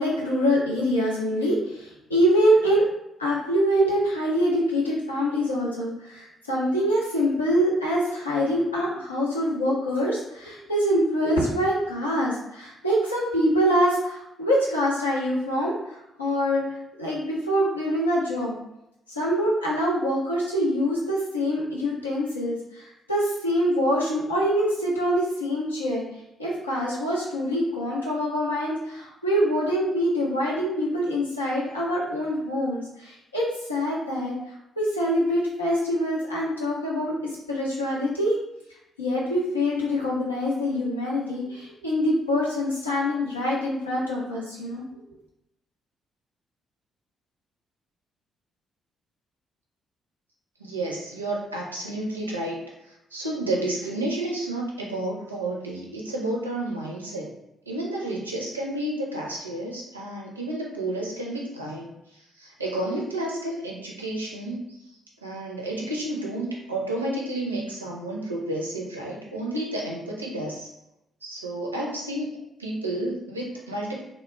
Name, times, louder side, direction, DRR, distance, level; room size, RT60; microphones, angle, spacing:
voice 1, 0.0-2.8 3.2-16.6 17.0-18.5 19.1-26.0 26.4-34.3 34.8-37.1 37.5-38.3 39.0-44.8, equal, 85° left, -5 dB, 0.5 m, -25 dB
voice 2, 50.6-52.6 53.1-57.3 57.7-61.9 62.4-64.7 65.2-70.7 71.2-72.3 72.6-74.0, right 1 dB, 85° right, -2 dB, 0.4 m, -31 dB
2.2 x 2.0 x 3.0 m, 0.86 s
figure-of-eight pair, 40°, 0 cm